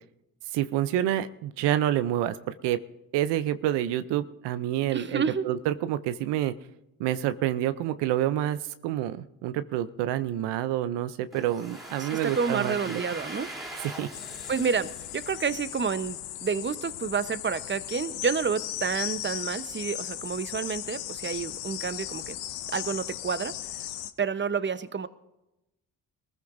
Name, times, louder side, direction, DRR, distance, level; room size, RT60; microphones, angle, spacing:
voice 1, 0.5-2.8 3.1-6.5 7.0-13.0 13.8-14.1, right 12 dB, 85° right, 12 dB, 0.6 m, -28 dB
voice 2, 4.9-5.4 12.0-13.5 14.5-22.4 22.7-23.5 24.2-25.1, right 6 dB, 30° right, 13 dB, 0.9 m, -29 dB
Domestic sounds home sounds, 11.3-16.1, right 1 dB, ahead, 3.2 m, -41 dB
sound 1, 14.1-24.1, left 13 dB, 90° left, 0.7 m, -37 dB
21.5 x 14.5 x 2.6 m, 0.92 s
supercardioid pair, 50°, 41 cm